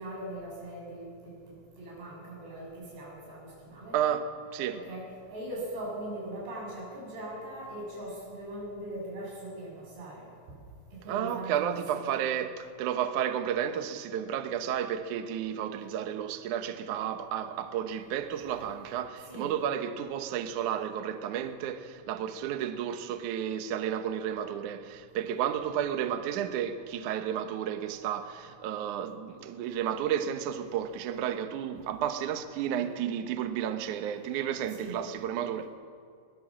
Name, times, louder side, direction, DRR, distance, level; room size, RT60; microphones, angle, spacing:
voice 1, 0.0-4.0 4.7-10.2 10.9-12.1 19.3-19.5 34.7-35.0, right 1 dB, 85° right, 9.3 m, -40 dB
voice 2, 3.9-4.8 11.1-35.7, right 9 dB, 70° right, 1.9 m, -32 dB
22.5 x 18.5 x 7.5 m
omnidirectional pair, 4.7 m